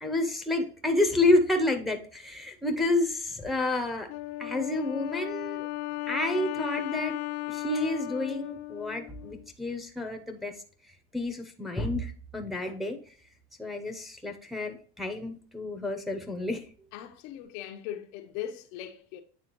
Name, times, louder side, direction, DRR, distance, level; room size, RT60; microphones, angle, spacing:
voice 1, 0.0-4.1 4.4-5.7 6.1-7.1 7.5-10.5 11.1-13.0 13.6-16.7, left 2 dB, ahead, 0.8 m, -29 dB
Wind instrument woodwind instrument, 4.1-9.5, left 16 dB, 70° left, 0.5 m, -35 dB
voice 2, 16.9-19.2, left 10 dB, 85° left, 0.9 m, -39 dB
9.0 x 3.5 x 3.0 m
supercardioid pair, 125°, 35 cm